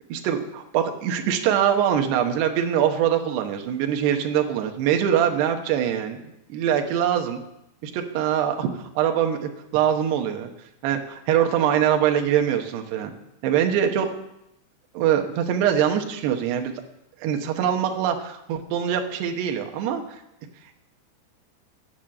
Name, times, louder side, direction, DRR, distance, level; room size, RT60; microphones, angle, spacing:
voice 1, 0.1-6.2 6.5-7.4 7.8-10.5 10.8-13.1 13.4-14.1 14.9-16.8 17.2-20.2, right 9 dB, 70° right, 4 dB, 2.8 m, -23 dB
9.3 x 8.6 x 7.5 m, 0.86 s
omnidirectional pair, 5.5 m